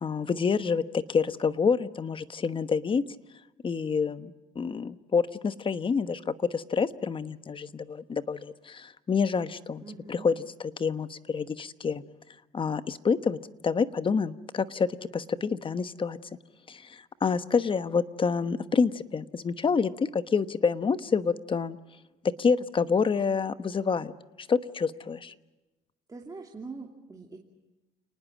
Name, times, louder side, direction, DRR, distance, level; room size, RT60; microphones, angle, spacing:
voice 1, 0.0-3.0 3.6-9.8 10.1-10.3 10.6-12.0 12.5-13.4 13.6-14.9 15.1-16.2 16.7-21.8 22.4-24.1 24.4-25.3, left 5 dB, 30° left, 12 dB, 1.1 m, -27 dB
voice 2, 9.8-10.3 26.1-27.4, right 4 dB, 20° right, 0 dB, 2.8 m, -43 dB
29.5 x 19.5 x 7.3 m, 1.1 s
cardioid pair, 110°, 17 cm